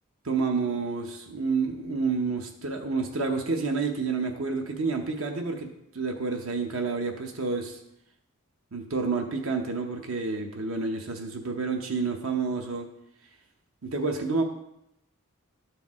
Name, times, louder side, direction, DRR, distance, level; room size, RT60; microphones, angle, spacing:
voice 1, 0.2-7.8 8.7-12.9 13.8-14.4, right 4 dB, 65° right, 3 dB, 0.8 m, -29 dB
12.0 x 4.6 x 3.6 m, 0.83 s
head